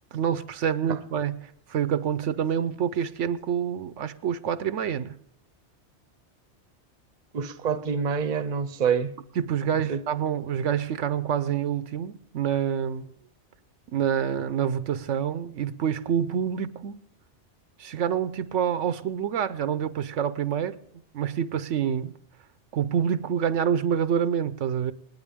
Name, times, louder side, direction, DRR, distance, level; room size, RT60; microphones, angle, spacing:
voice 1, 0.1-1.4 1.7-5.1 9.4-13.1 13.9-17.0 17.8-20.8 21.1-22.1 22.7-24.9, right 8 dB, 85° right, 1.1 m, -27 dB
voice 2, 7.3-9.1 9.9-10.0, right 6 dB, 40° right, 0.8 m, -27 dB
28.5 x 9.6 x 3.6 m
omnidirectional pair, 1.2 m